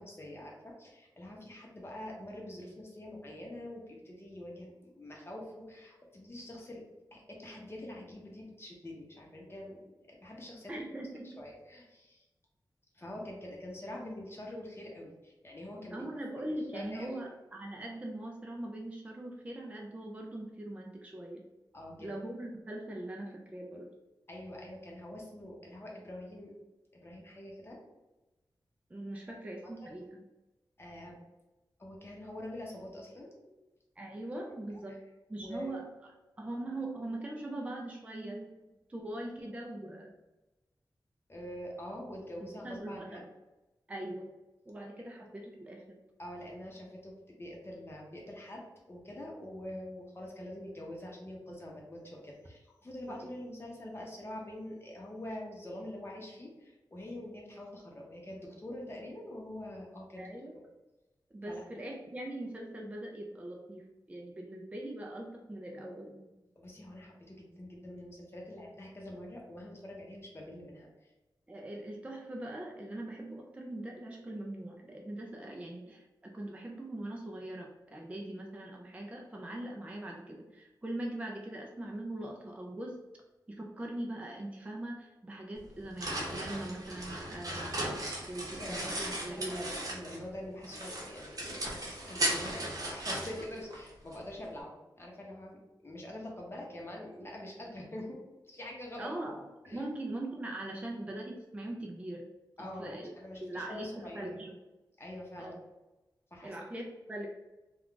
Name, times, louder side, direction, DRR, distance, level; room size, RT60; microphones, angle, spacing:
voice 1, 0.0-6.8 7.1-10.7 11.2-12.2 12.9-16.1 16.4-17.2 21.7-22.1 24.3-26.5 27.0-27.8 29.8-30.0 30.8-31.2 31.8-33.6 35.4-35.7 41.3-43.2 46.2-48.6 48.9-60.6 61.5-61.6 66.6-71.1 88.2-98.2 98.5-99.1 99.7-99.8 102.6-104.4 105.0-105.6 106.3-106.8, left 1 dB, 30° left, -2 dB, 0.8 m, -45 dB
voice 2, 10.7-11.4 15.9-21.4 22.0-23.9 28.9-30.2 34.0-35.0 35.3-35.9 36.4-38.5 38.9-40.1 42.6-43.3 43.9-44.3 44.7-46.0 60.2-60.5 61.3-66.3 71.5-83.0 83.5-87.8 88.3-89.7 99.0-102.2 102.8-103.1 103.4-104.6 105.4-105.6 106.4-107.3, right 1 dB, 15° right, 0 dB, 0.4 m, -41 dB
sound 1, 85.6-90.3 90.6-94.2, right 1 dB, 50° right, 0.8 m, -37 dB
2.3 x 2.3 x 3.7 m, 1.1 s
wide cardioid pair, 105°, 8 cm